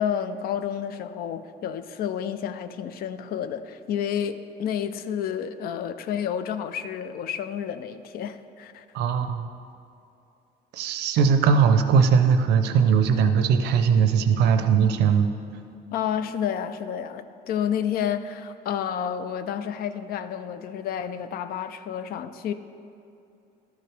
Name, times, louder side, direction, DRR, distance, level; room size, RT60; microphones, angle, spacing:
voice 1, 0.0-8.8 15.9-22.5, left 8 dB, 65° left, 11 dB, 0.4 m, -30 dB
voice 2, 8.9-9.5 10.7-15.3, right 6 dB, 80° right, 8 dB, 0.6 m, -20 dB
12.0 x 4.7 x 3.3 m, 2.6 s
cardioid pair, 110°, 17 cm